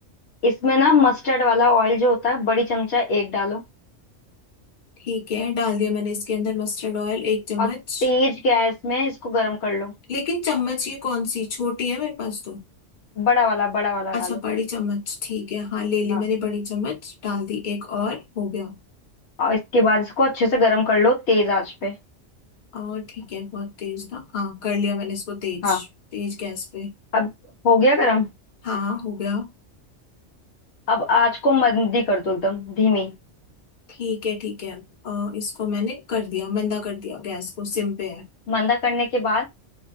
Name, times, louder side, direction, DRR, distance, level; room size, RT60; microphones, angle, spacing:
voice 1, 0.4-3.6 7.6-7.7 8.0-9.9 13.2-14.4 16.1-16.2 19.4-21.9 25.6-25.8 27.1-27.3 27.6-28.3 30.9-33.1 38.5-39.4, left 3 dB, 65° left, 0.9 m, -20 dB
voice 2, 5.0-8.1 10.1-12.6 14.1-18.7 22.7-25.9 26.1-26.9 28.6-29.5 33.9-38.3, left 5 dB, 45° left, 1.0 m, -27 dB
2.6 x 2.2 x 2.4 m
omnidirectional pair, 1.3 m